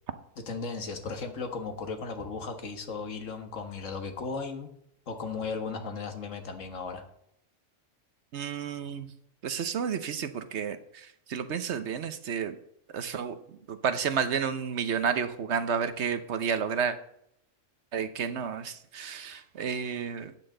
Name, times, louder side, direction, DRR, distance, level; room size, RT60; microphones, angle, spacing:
voice 1, 0.5-4.7 5.1-7.0, left 4 dB, 90° left, 6 dB, 1.7 m, -36 dB
voice 2, 8.3-9.1 9.4-12.6 12.9-17.0 17.9-20.3, right 7 dB, 65° right, 10 dB, 1.1 m, -31 dB
12.0 x 8.8 x 3.9 m, 0.73 s
omnidirectional pair, 1.3 m